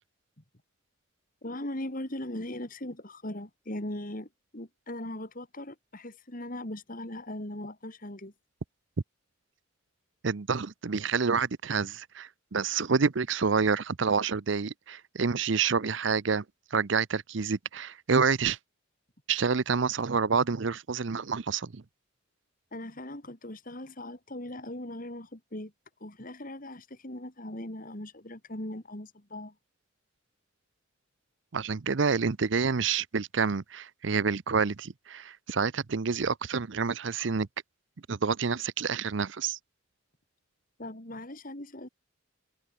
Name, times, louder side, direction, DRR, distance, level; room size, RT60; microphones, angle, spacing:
voice 1, 1.4-8.3 22.7-25.7 26.0-29.5 40.8-41.9, left 1 dB, 40° left, 3.2 m, -39 dB
voice 2, 10.2-16.4 16.7-18.6 19.3-21.8 31.5-37.5 38.1-39.6, right 5 dB, 60° right, 0.7 m, -28 dB
head